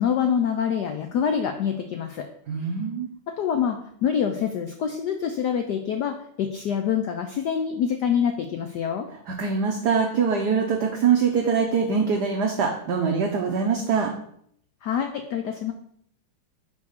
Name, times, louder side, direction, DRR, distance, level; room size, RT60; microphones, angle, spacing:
voice 1, 0.0-2.3 3.4-9.1 14.8-15.7, left 8 dB, 75° left, 6 dB, 0.9 m, -26 dB
voice 2, 2.5-3.1 9.3-14.1, right 6 dB, 60° right, 1 dB, 1.2 m, -23 dB
5.4 x 4.7 x 6.4 m, 0.68 s
omnidirectional pair, 2.4 m